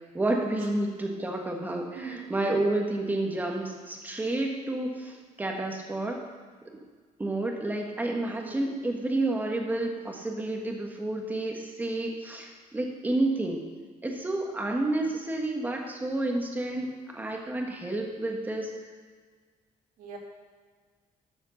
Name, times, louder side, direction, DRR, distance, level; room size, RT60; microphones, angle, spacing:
voice 1, 0.1-6.2 7.2-13.6 14.0-18.7, right 2 dB, 15° right, 1 dB, 1.5 m, -30 dB
voice 2, 1.9-2.3 8.4-8.6 20.0-20.2, right 5 dB, 85° right, -1 dB, 2.6 m, -41 dB
12.5 x 6.5 x 6.5 m, 1.5 s
cardioid pair, 160°, 14 cm